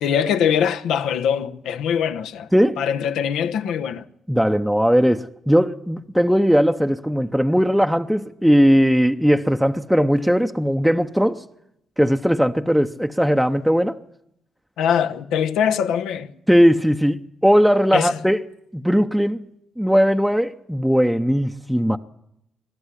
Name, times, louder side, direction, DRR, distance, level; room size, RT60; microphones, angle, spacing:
voice 1, 0.0-2.5 2.8-4.0 14.8-16.3 17.9-18.1, left 8 dB, 85° left, 1.0 m, -22 dB
voice 2, 4.3-11.4 12.0-14.0 16.5-18.4 18.7-19.5 19.8-22.0, equal, ahead, 0.7 m, -18 dB
21.5 x 12.5 x 9.9 m
cardioid pair, 90°, 0 cm